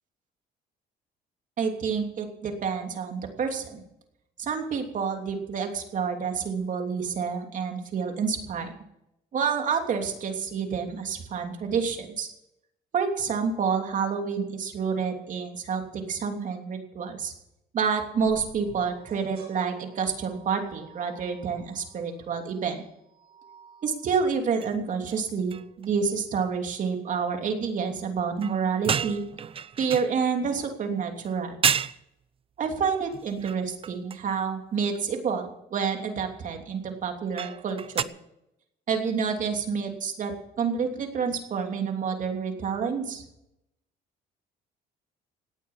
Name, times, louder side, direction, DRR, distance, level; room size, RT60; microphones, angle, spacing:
voice 1, 1.6-3.8 4.4-8.7 9.3-12.3 12.9-17.3 17.7-22.8 23.8-29.2 29.8-31.6 32.6-38.0 38.9-43.2, right 6 dB, 50° right, 4 dB, 3.0 m, -28 dB
sound 1, 18.2-24.3, right 5 dB, 65° right, 7.0 m, -52 dB
sound 2, 24.6-24.8 25.1-25.2 25.5-25.9 28.4-30.7 31.3-31.4 31.6-32.0 33.1-34.3 34.8-35.0 37.4-38.0, right 7 dB, 35° right, 0.6 m, -30 dB
17.5 x 9.6 x 7.2 m, 0.84 s
cardioid pair, 110°, 17 cm